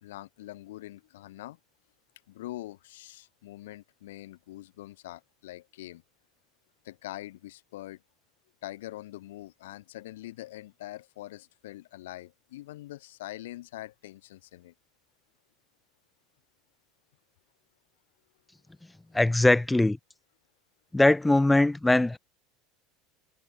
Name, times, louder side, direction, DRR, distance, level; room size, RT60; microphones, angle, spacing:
voice 1, 0.0-1.6 2.3-6.0 6.8-8.0 8.6-14.7, left 16 dB, 90° left, 0.8 m, -43 dB
voice 2, 19.1-20.0 20.9-22.2, left 2 dB, 5° left, 0.3 m, -21 dB
supercardioid pair, 115°, 0 cm